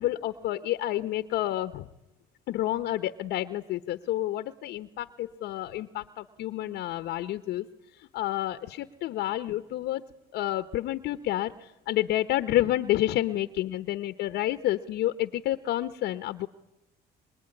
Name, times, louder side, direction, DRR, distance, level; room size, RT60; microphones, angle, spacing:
voice 1, 0.0-1.9 2.5-7.7 7.9-10.0 10.3-16.5, left 14 dB, 80° left, 11 dB, 1.0 m, -29 dB
24.5 x 24.5 x 9.9 m, 0.91 s
cardioid pair, 110°, 17 cm